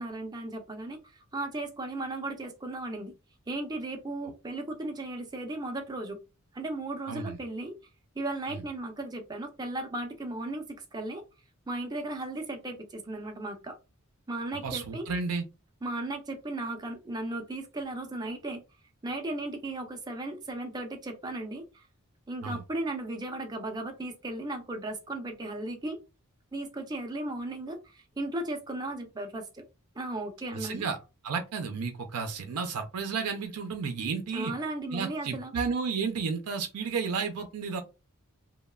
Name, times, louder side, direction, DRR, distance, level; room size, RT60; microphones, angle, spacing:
voice 1, 0.0-3.1 3.5-6.2 6.5-7.7 8.2-10.7 10.9-11.2 11.7-13.8 14.3-15.1 15.8-18.6 19.0-21.9 22.3-26.0 26.5-29.6 30.0-30.9 34.3-35.5, right 2 dB, 20° right, 0.5 m, -36 dB
voice 2, 14.6-15.5 22.4-22.6 30.5-31.0 31.2-34.5 34.9-37.8, right 5 dB, 90° right, 0.4 m, -32 dB
3.0 x 2.0 x 2.2 m
head